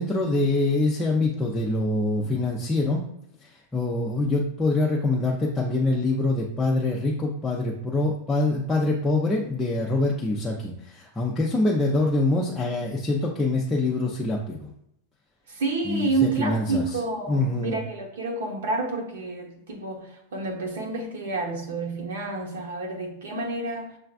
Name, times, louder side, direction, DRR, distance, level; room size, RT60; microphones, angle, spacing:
voice 1, 0.0-3.0 3.7-14.7 15.9-16.8 17.3-17.8, left 2 dB, 5° left, 0.5 m, -24 dB
voice 2, 15.5-24.0, right 3 dB, 85° right, 1.1 m, -29 dB
6.6 x 2.2 x 2.5 m
supercardioid pair, 155°, 0 cm